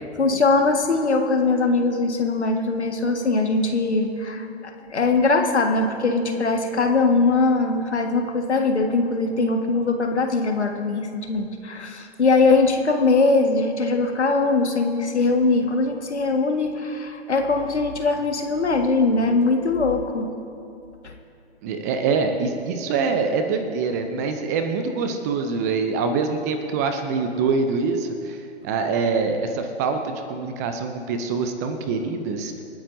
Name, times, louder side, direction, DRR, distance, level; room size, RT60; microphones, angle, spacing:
voice 1, 0.2-20.3 21.0-21.1, left 3 dB, 75° left, 3 dB, 1.7 m, -21 dB
voice 2, 21.6-32.5, right 4 dB, 15° right, 6 dB, 0.5 m, -25 dB
28.0 x 9.4 x 2.7 m, 2.6 s
figure-of-eight pair, 130°, 34 cm